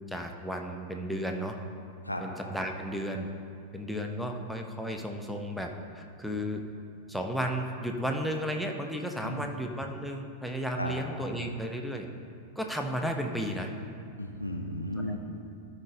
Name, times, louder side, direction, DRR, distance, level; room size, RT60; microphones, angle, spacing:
voice 1, 0.1-1.6 2.2-3.3 3.7-6.6 7.1-12.1 12.6-13.7 15.1-15.2, equal, ahead, 2 dB, 0.8 m, -33 dB
voice 2, 14.2-15.2, left 1 dB, 85° left, 3 dB, 0.7 m, -34 dB
13.0 x 5.1 x 3.8 m, 2.4 s
figure-of-eight pair, 90°, 0 cm